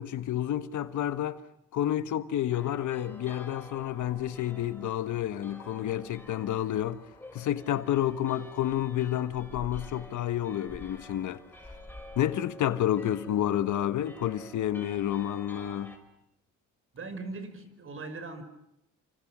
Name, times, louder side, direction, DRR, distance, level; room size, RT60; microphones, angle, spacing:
voice 1, 0.0-1.4 1.7-7.0 7.3-11.4 12.1-15.9, left 11 dB, 75° left, 1.6 m, -30 dB
sound 1, 2.5-16.0, left 1 dB, 5° left, 5.8 m, -49 dB
voice 2, 16.9-18.4, right 3 dB, 45° right, 5.7 m, -39 dB
29.5 x 26.5 x 6.3 m
cardioid pair, 90°, 30 cm